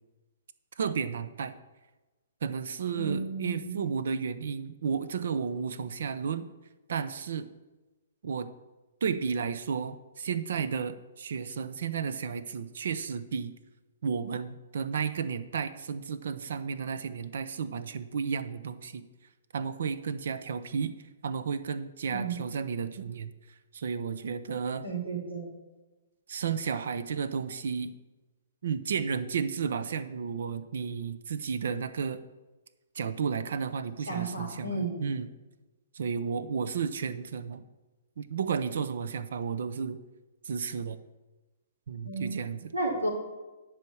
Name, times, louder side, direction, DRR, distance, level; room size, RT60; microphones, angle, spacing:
voice 1, 0.8-1.5 2.4-6.5 6.9-7.5 8.2-8.5 9.0-13.5 14.0-19.0 19.5-20.9 21.2-23.3 23.7-24.8 26.3-27.9 28.6-32.2 32.9-35.3 35.9-37.6 38.2-40.0 40.4-41.0 41.9-42.7, right 6 dB, 65° right, 13 dB, 0.7 m, -32 dB
voice 2, 2.9-3.8 22.1-22.4 24.8-25.5 34.1-35.0 42.0-42.3 42.7-43.1, right 3 dB, 85° right, -3 dB, 3.2 m, -33 dB
10.5 x 4.9 x 7.2 m, 1.1 s
figure-of-eight pair, 120°, 0 cm